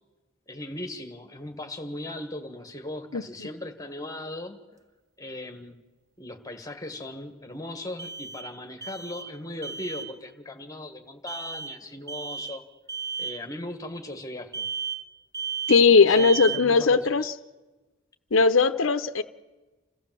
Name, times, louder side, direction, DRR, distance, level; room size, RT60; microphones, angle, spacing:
voice 1, 0.5-4.6 5.2-5.8 6.2-12.6 13.2-14.7 15.9-17.3, left 1 dB, 15° left, 6 dB, 1.7 m, -38 dB
voice 2, 3.1-3.5 15.7-17.3 18.3-19.2, left 4 dB, 70° left, 10 dB, 0.8 m, -19 dB
sound 1, 4.7-4.8 8.0-9.4 9.6-10.1 11.3-11.8 12.1-12.6 12.9-13.4 14.5-15.1 15.3-15.9 16.1-16.7, right 6 dB, 15° right, 0.9 m, -34 dB
28.0 x 14.5 x 7.6 m, 1.2 s
head